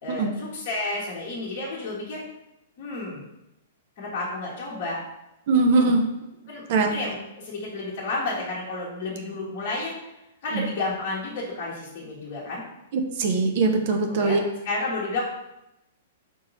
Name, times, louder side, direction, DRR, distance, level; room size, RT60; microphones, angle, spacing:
voice 1, 0.0-2.2 2.8-3.2 4.0-5.0 6.5-10.1 10.4-12.6 14.1-14.4 14.6-15.2, left 2 dB, 55° left, -6 dB, 1.2 m, -31 dB
voice 2, 5.5-6.0 6.7-6.9 12.9-14.4, right 3 dB, 55° right, 4 dB, 0.6 m, -21 dB
4.5 x 2.8 x 4.0 m, 0.89 s
hypercardioid pair, 120°, 0 cm